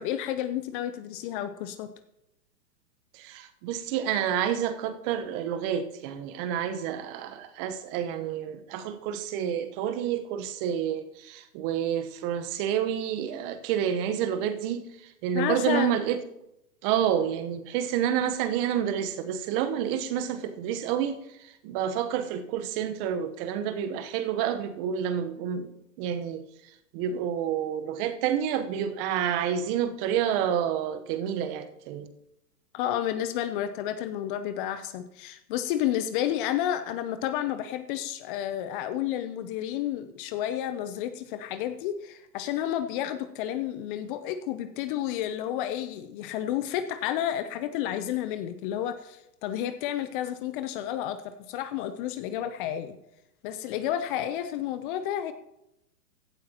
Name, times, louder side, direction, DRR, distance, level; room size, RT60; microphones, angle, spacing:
voice 1, 0.0-1.9 15.3-16.0 32.7-53.0 53.4-55.3, left 11 dB, 35° left, 10 dB, 0.7 m, -31 dB
voice 2, 3.1-14.8 15.2-16.2 16.8-21.2 21.6-25.7 26.0-26.4 26.9-32.1, right 9 dB, 35° right, 10 dB, 1.1 m, -29 dB
16.5 x 12.0 x 3.0 m, 0.87 s
hypercardioid pair, 115°, 48 cm